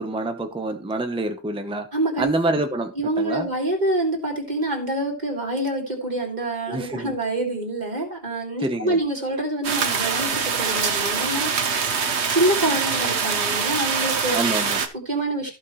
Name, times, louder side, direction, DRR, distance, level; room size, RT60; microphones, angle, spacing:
voice 1, 0.0-1.9 2.2-3.5 6.7-7.1 8.6-9.0 14.3-14.8, right 2 dB, 5° right, 0.9 m, -27 dB
voice 2, 1.9-2.3 3.0-11.8 12.3-14.4 14.9-15.5, right 1 dB, 40° right, 2.9 m, -26 dB
sound 1, 9.6-14.9, right 5 dB, 85° right, 1.4 m, -24 dB
14.5 x 5.9 x 3.2 m
omnidirectional pair, 1.1 m